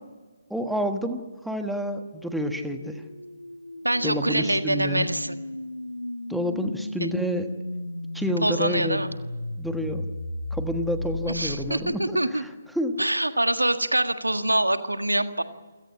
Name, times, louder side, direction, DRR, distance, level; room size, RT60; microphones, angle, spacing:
voice 1, 0.5-3.0 4.0-5.1 6.3-7.5 8.1-9.0 9.6-10.1 10.5-12.5 12.7-13.0, equal, ahead, 7 dB, 1.4 m, -29 dB
sound 1, 2.0-12.1, left 1 dB, 80° left, 1.1 m, -35 dB
voice 2, 3.8-5.4 7.0-7.1 8.4-9.1 11.3-12.4 13.0-15.4, right 1 dB, 80° right, 9 dB, 1.7 m, -25 dB
28.5 x 17.0 x 8.5 m, 1.4 s
figure-of-eight pair, 140°, 0 cm